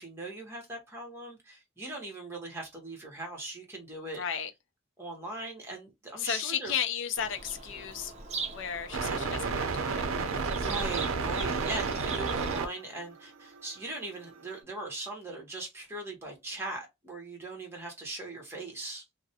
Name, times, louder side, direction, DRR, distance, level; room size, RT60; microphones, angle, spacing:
voice 1, 0.0-4.2 5.0-6.7 10.5-19.0, right 2 dB, 10° right, 0.9 m, -40 dB
voice 2, 4.2-4.5 6.2-8.1 8.5-10.2, left 8 dB, 65° left, 0.4 m, -34 dB
Bird vocalization bird call bird song, 7.2-12.6, right 4 dB, 35° right, 0.5 m, -41 dB
sound 1, 8.9-12.7 13.0-14.4, right 4 dB, 85° right, 0.5 m, -31 dB
2.4 x 2.0 x 2.7 m
head